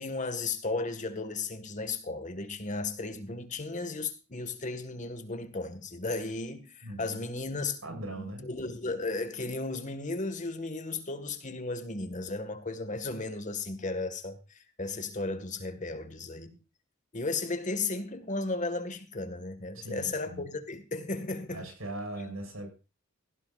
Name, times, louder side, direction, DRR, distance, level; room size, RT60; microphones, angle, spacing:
voice 1, 0.0-16.5 17.1-21.7, left 3 dB, 40° left, 1.9 m, -35 dB
voice 2, 7.8-8.5 16.5-16.6 19.7-20.5 21.5-22.7, right 1 dB, 85° right, 6.7 m, -40 dB
17.5 x 15.0 x 2.6 m
head